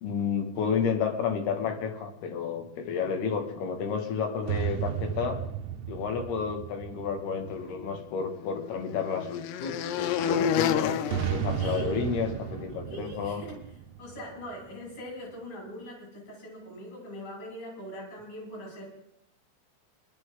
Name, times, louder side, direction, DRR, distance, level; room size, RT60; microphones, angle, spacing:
voice 1, 0.0-5.4 5.9-13.4, left 6 dB, 60° left, 5 dB, 3.6 m, -31 dB
sound 1, 4.4-8.1 11.1-14.8, right 10 dB, 80° right, 2.7 m, -34 dB
sound 2, 7.7-12.3, left 8 dB, 80° left, 2.5 m, -31 dB
voice 2, 11.6-12.1 12.9-13.6 14.0-18.9, equal, 45° left, -3 dB, 9.3 m, -41 dB
21.0 x 12.5 x 3.8 m, 0.82 s
omnidirectional pair, 5.6 m